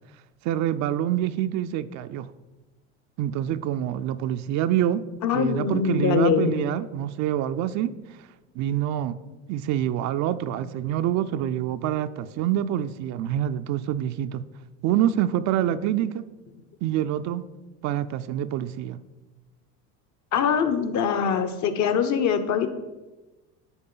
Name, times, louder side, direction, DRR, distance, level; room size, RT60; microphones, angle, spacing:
voice 1, 0.4-2.3 3.2-5.0 5.3-8.2 8.6-9.2 9.5-14.4 14.8-16.3 16.8-17.4 17.8-19.0, right 11 dB, 55° right, 0.4 m, -26 dB
voice 2, 5.2-6.6 20.3-22.7, left 7 dB, 55° left, 0.8 m, -23 dB
10.0 x 3.7 x 3.9 m
hypercardioid pair, 80°, 35 cm